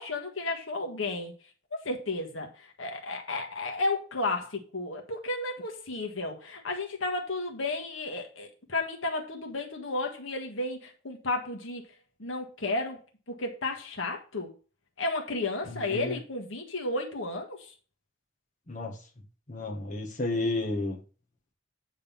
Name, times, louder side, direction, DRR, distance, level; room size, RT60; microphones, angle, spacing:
voice 1, 0.0-1.3 1.7-11.9 12.2-13.0 13.3-14.5 15.0-17.7, left 2 dB, 75° left, 1.6 m, -33 dB
voice 2, 15.7-16.2 18.7-19.0 19.5-21.0, left 2 dB, 40° left, 1.5 m, -32 dB
8.8 x 4.0 x 5.3 m
head